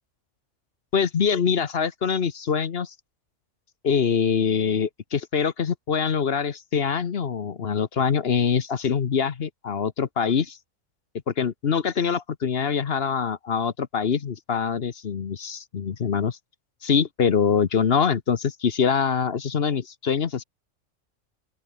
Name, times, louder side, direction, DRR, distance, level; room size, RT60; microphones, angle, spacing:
voice 1, 0.9-2.9 3.8-10.6 11.3-16.4 16.8-20.4, left 6 dB, 55° left, 1.1 m, -24 dB
open air
omnidirectional pair, 1.3 m